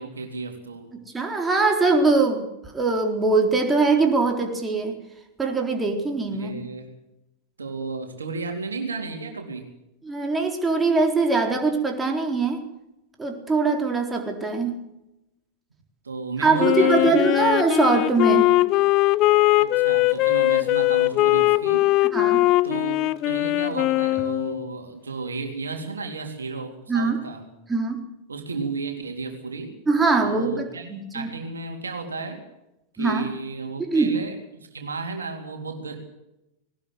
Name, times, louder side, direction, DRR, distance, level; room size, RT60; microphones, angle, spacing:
voice 1, 0.0-0.9 6.3-6.9 7.6-9.7 16.0-17.2 19.6-21.9 22.6-27.4 28.3-29.8 30.2-32.4 32.9-36.0, right 4 dB, 75° right, 4 dB, 3.6 m, -33 dB
voice 2, 0.9-2.5 2.7-5.0 5.4-6.6 10.0-12.6 13.2-14.8 16.4-18.5 22.1-22.4 26.9-27.2 27.7-28.0 29.9-31.3 33.0-33.3 33.8-34.2, right 3 dB, 15° right, 2 dB, 4.1 m, -22 dB
Wind instrument woodwind instrument, 16.6-24.7, left 18 dB, 40° left, 0.8 m, -20 dB
20.0 x 19.5 x 7.8 m, 0.88 s
figure-of-eight pair, 90°, 0 cm